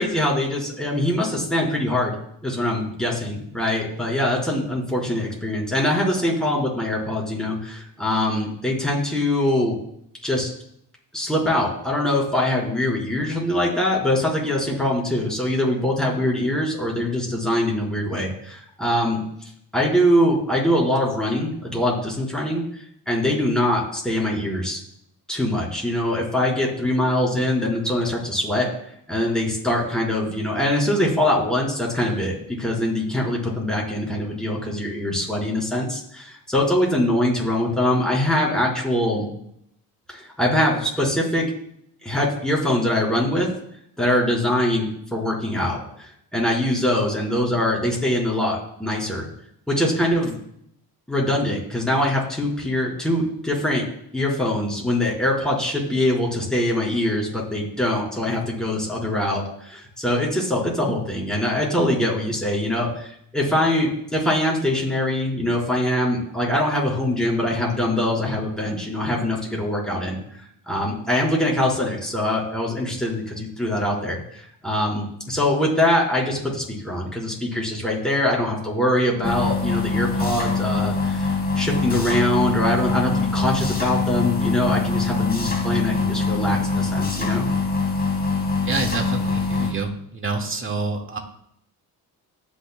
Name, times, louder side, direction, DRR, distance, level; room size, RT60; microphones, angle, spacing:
voice 1, 0.0-2.1 2.4-9.7 10.2-10.5 11.1-22.6 23.1-24.8 25.3-28.7 29.1-39.3 40.1-41.5 42.0-43.5 44.0-49.2 49.7-50.4 51.1-53.8 54.1-70.2 70.7-87.5, left 1 dB, ahead, -4 dB, 4.2 m, -23 dB
sound 1, 79.2-89.7, left 3 dB, 25° left, 2.2 m, -24 dB
voice 2, 88.6-91.2, right 3 dB, 30° right, 2 dB, 1.9 m, -27 dB
19.5 x 6.5 x 2.2 m, 0.71 s
cardioid pair, 80°, 39 cm